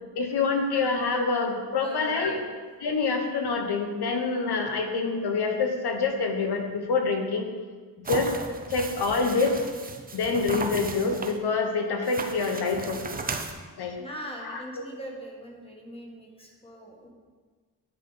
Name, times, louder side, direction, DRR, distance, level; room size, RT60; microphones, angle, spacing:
voice 1, 0.1-2.4 2.8-7.5 8.1-9.6 10.1-13.1 13.8-14.0 14.4-14.6, left 4 dB, 75° left, 4 dB, 1.1 m, -26 dB
voice 2, 1.7-2.3 14.0-17.1, equal, 15° left, -1 dB, 1.4 m, -41 dB
sound 1, 8.0-11.4 12.0-13.5, right 3 dB, 20° right, 0.5 m, -35 dB
10.5 x 5.7 x 4.0 m, 1.5 s
wide cardioid pair, 140°, 40 cm